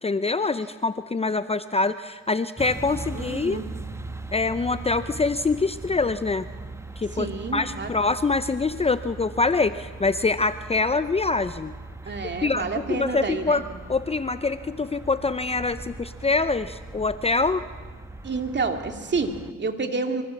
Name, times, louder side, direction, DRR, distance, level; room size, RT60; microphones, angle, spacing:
voice 1, 0.0-3.6 4.3-6.5 7.0-11.7 12.4-13.6 13.9-17.6, left 3 dB, 20° left, 12 dB, 0.7 m, -25 dB
sound 1, 2.6-19.5, right 2 dB, 10° right, 1.3 m, -40 dB
voice 2, 3.1-3.6 7.1-7.9 12.0-13.6 18.2-20.2, right 4 dB, 35° right, 5 dB, 2.9 m, -29 dB
25.0 x 24.5 x 7.3 m, 1.5 s
cardioid pair, 90°, 30 cm